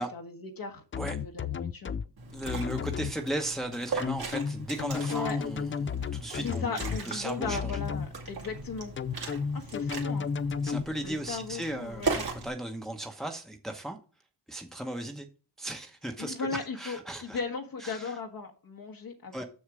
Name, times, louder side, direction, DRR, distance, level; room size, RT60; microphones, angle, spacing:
voice 1, 0.0-1.9 5.1-5.4 6.4-8.9 9.5-10.3 11.0-12.2 16.2-19.4, left 5 dB, 55° left, 1.3 m, -37 dB
sound 1, 0.9-2.1 2.5-3.1 4.0-7.0 7.4-8.1 9.0-10.8, left 6 dB, 30° left, 0.4 m, -32 dB
Liquid, 2.2-12.5, right 3 dB, 60° right, 2.3 m, -38 dB
voice 2, 2.3-6.8 7.1-7.7 10.6-14.0 14.5-15.3 15.6-17.4 17.8-18.1 19.3-19.4, right 1 dB, ahead, 1.0 m, -36 dB
6.5 x 6.4 x 4.9 m
cardioid pair, 85°, 41 cm